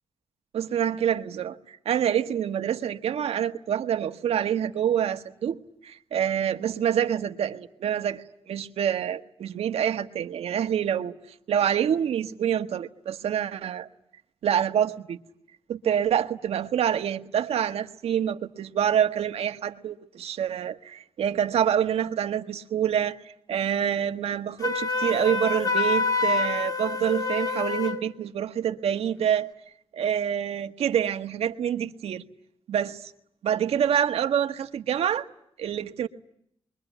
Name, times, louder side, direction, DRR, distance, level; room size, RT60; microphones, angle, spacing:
voice 1, 0.5-5.6 5.8-11.1 11.5-13.9 14.4-15.2 15.7-29.5 29.9-32.2 32.7-33.1 33.4-35.3 35.6-36.1, right 9 dB, 85° right, 1.6 m, -26 dB
Wind instrument woodwind instrument, 24.6-28.0, left 4 dB, 35° left, 2.7 m, -26 dB
27.0 x 23.0 x 9.2 m
cardioid pair, 110°, 10 cm